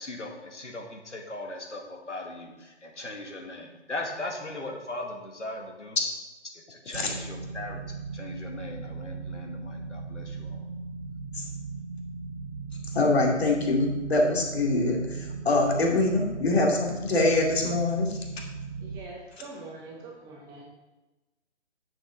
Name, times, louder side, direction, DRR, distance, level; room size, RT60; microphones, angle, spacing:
voice 1, 0.0-6.0 6.5-7.8 8.1-10.6, left 2 dB, 85° left, 1 dB, 2.1 m, -39 dB
sound 1, 6.9-19.0, right 4 dB, 40° right, 0.8 m, -38 dB
voice 2, 12.9-18.1, left 2 dB, 60° left, 0 dB, 2.7 m, -24 dB
voice 3, 18.8-20.7, right 3 dB, 10° right, -1 dB, 1.0 m, -43 dB
9.6 x 7.4 x 3.9 m, 1.1 s
figure-of-eight pair, 140°, 35 cm